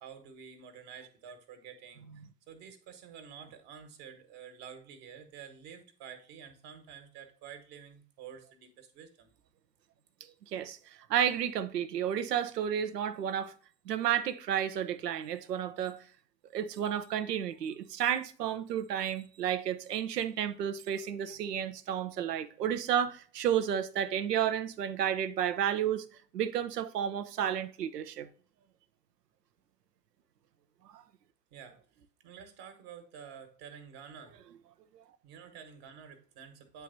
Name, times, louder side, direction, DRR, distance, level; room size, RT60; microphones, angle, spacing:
voice 1, 0.0-9.3 31.5-31.8 32.2-34.4 35.2-36.8, right 7 dB, 50° right, 1.5 m, -49 dB
voice 2, 11.1-13.5 13.9-16.0 16.5-26.0 26.3-28.3 30.9-31.0, right 9 dB, 80° right, 0.7 m, -31 dB
9.2 x 3.4 x 4.0 m
figure-of-eight pair, 85°, 48 cm